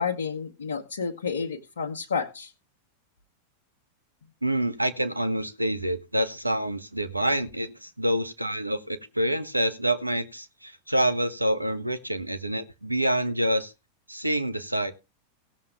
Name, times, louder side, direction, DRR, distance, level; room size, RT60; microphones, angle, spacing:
voice 1, 0.0-2.5, left 5 dB, 70° left, 1.1 m, -30 dB
voice 2, 4.4-13.7 14.1-14.9, right 1 dB, 85° right, 0.9 m, -27 dB
17.5 x 7.2 x 3.4 m
figure-of-eight pair, 90°, 0 cm